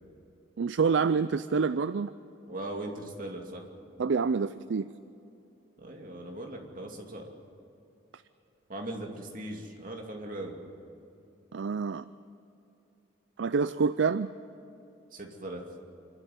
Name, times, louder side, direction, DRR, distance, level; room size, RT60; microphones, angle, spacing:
voice 1, 0.6-2.1 4.0-4.9 11.5-12.0 13.4-14.3, right 5 dB, 65° right, 13 dB, 0.4 m, -27 dB
voice 2, 2.5-3.6 5.8-7.3 8.7-10.6 15.1-15.6, right 1 dB, 45° right, 1 dB, 2.6 m, -39 dB
26.5 x 12.5 x 9.4 m, 2.8 s
head